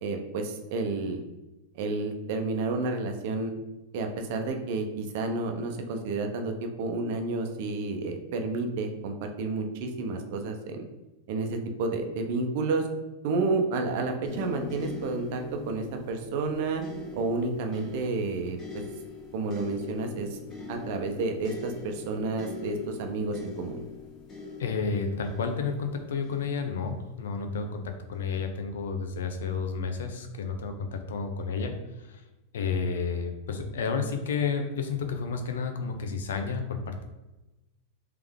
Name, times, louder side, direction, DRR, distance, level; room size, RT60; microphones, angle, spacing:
voice 1, 0.0-1.2 1.7-3.5 3.9-10.8 11.3-12.9 13.2-16.8 17.1-18.8 19.3-23.8, right 3 dB, 60° right, 5 dB, 0.7 m, -30 dB
sound 1, 14.2-27.3 28.1-28.3, left 4 dB, 30° left, 1.4 m, -42 dB
voice 2, 24.6-32.2 32.5-37.0, left 5 dB, 85° left, 5 dB, 0.7 m, -31 dB
3.5 x 3.4 x 3.6 m, 1.0 s
supercardioid pair, 130°, 0 cm